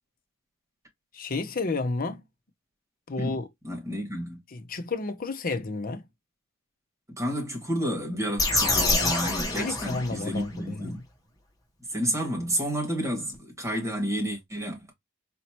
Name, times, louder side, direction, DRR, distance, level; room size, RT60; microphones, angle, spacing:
voice 1, 1.1-2.2 3.1-3.5 4.5-6.0 9.6-11.0, left 3 dB, 45° left, 0.7 m, -31 dB
voice 2, 3.6-4.4 7.2-11.0 11.8-14.9, equal, 15° right, 1.9 m, -30 dB
sound 1, 8.4-10.5, left 2 dB, 20° left, 1.1 m, -26 dB
4.3 x 2.7 x 2.8 m
head